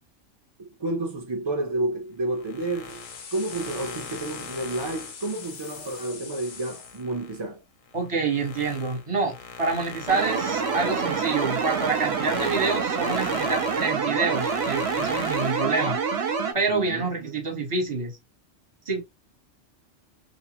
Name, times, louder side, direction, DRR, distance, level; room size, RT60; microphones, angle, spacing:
voice 1, 0.6-3.0 3.3-7.6 16.7-17.1, right 2 dB, 45° right, 0.3 m, -30 dB
sound 1, 2.3-7.4 7.9-15.7, left 6 dB, 85° left, 0.9 m, -40 dB
sound 2, 2.8-7.0, left 6 dB, 60° left, 0.5 m, -42 dB
voice 2, 7.9-16.0 16.5-18.1 18.9-19.0, right 4 dB, 30° right, 0.8 m, -27 dB
sound 3, 10.1-16.5, right 5 dB, 65° right, 0.8 m, -27 dB
2.5 x 2.1 x 2.8 m
omnidirectional pair, 1.3 m